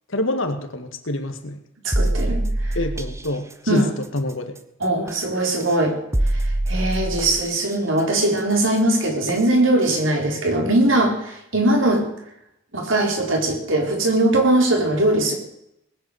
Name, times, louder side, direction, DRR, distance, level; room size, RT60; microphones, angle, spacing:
voice 1, 0.1-1.6 2.7-4.6, left 1 dB, 75° left, 8 dB, 1.9 m, -26 dB
voice 2, 1.8-2.8 3.7-3.9 4.8-6.0 6.7-12.1 12.7-15.3, right 1 dB, 75° right, 2 dB, 4.1 m, -20 dB
sound 1, 1.9-3.2 5.1-5.2 6.1-7.5 9.3-9.4 9.9-10.0, right 1 dB, 15° right, 0.9 m, -23 dB
19.5 x 8.5 x 8.0 m, 0.79 s
head